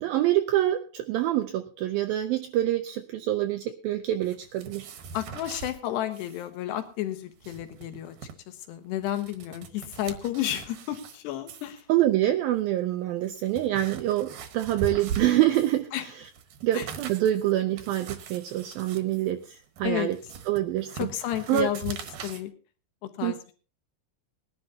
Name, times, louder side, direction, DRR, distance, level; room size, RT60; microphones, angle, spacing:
voice 1, 0.0-4.9 11.9-16.1 16.6-20.2 20.5-21.1 21.5-21.7 23.2-23.5, right 13 dB, 80° right, 7 dB, 2.2 m, -26 dB
sound 1, 4.2-5.8 6.1-6.5 6.7-6.8 7.2-8.3 8.9-11.2 11.5-11.8 12.6-12.7 13.2-15.9 16.2-22.4, right 6 dB, 65° right, 2.5 m, -41 dB
voice 2, 5.1-8.2 8.5-11.8 15.9-16.0 16.7-16.8 19.8-20.1 21.0-22.0 22.2-22.5 23.0-23.5, left 12 dB, 80° left, 7 dB, 3.4 m, -32 dB
21.0 x 11.5 x 2.9 m, 0.35 s
omnidirectional pair, 4.9 m